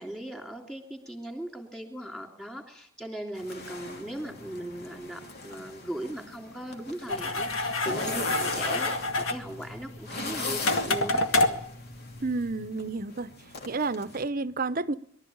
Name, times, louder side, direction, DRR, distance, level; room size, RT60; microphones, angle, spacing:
voice 1, 0.0-11.2, right 1 dB, 5° left, 3 dB, 3.3 m, -39 dB
sound 1, 3.3-14.2, left 2 dB, 50° left, 2.9 m, -39 dB
sound 2, 7.1-12.7, left 2 dB, 70° left, 2.1 m, -29 dB
voice 2, 12.2-13.3 13.7-14.9, right 3 dB, 45° right, 15 dB, 0.8 m, -30 dB
23.0 x 13.0 x 8.8 m, 0.71 s
head